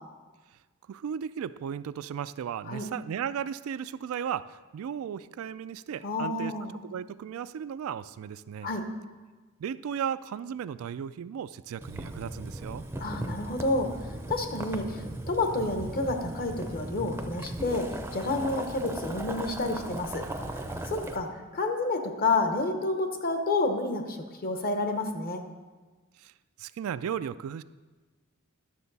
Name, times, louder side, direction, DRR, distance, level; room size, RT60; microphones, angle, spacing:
voice 1, 0.9-6.5 6.8-8.7 9.6-12.8 26.2-26.3 26.6-27.6, right 8 dB, 80° right, 16 dB, 0.3 m, -35 dB
voice 2, 6.0-6.8 8.6-8.8 13.0-17.9 18.1-20.2 20.8-21.3 21.5-25.4, left 2 dB, 45° left, 5 dB, 0.9 m, -29 dB
Boiling, 11.8-21.2, right 1 dB, 10° right, 0.5 m, -37 dB
11.5 x 6.7 x 4.0 m, 1.3 s
head